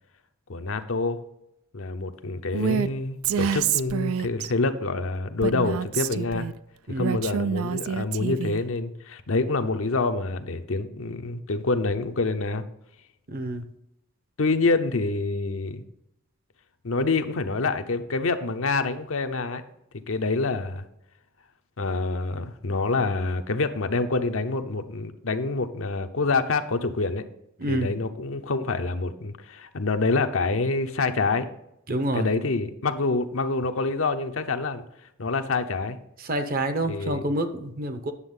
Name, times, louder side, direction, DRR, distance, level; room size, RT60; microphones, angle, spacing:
voice 1, 0.5-1.2 1.7-6.5 6.9-12.6 14.4-15.8 16.8-19.6 20.1-20.8 21.8-27.2 27.7-31.5 32.1-34.8 35.2-36.0 36.8-37.2, left 3 dB, 65° left, 8 dB, 0.7 m, -26 dB
Female speech woman speaking, 2.5-2.9 3.2-4.5 5.4-6.5 7.0-8.6, right 8 dB, 75° right, 0.4 m, -27 dB
voice 2, 6.9-7.2 13.3-13.6 27.6-27.9 31.9-32.3 36.3-38.1, right 1 dB, 40° right, 9 dB, 0.8 m, -27 dB
9.7 x 7.1 x 3.8 m, 0.80 s
head